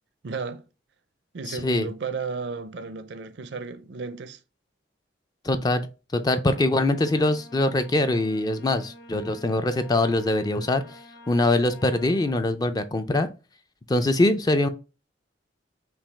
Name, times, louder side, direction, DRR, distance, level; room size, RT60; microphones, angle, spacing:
voice 1, 0.2-0.6 1.3-4.4, right 4 dB, 65° right, 0.5 m, -34 dB
voice 2, 1.5-1.9 5.4-5.9 6.1-11.0 11.3-13.3 13.9-14.7, left 2 dB, 20° left, 0.4 m, -23 dB
sound 1, 6.5-12.3, left 1 dB, 65° left, 2.4 m, -47 dB
5.8 x 2.3 x 3.3 m
head